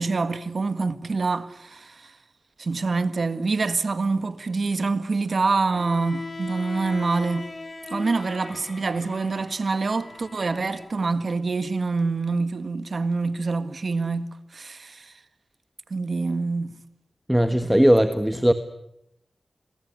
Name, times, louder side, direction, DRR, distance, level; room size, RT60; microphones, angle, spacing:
voice 1, 0.0-2.2 2.6-7.5 7.9-15.1 15.9-16.7, right 3 dB, 60° right, 1.7 m, -26 dB
Bowed string instrument, 5.7-10.9, left 3 dB, 45° left, 2.8 m, -38 dB
voice 2, 17.3-18.5, equal, 5° right, 1.5 m, -18 dB
28.0 x 21.0 x 9.7 m
wide cardioid pair, 80°, 0 cm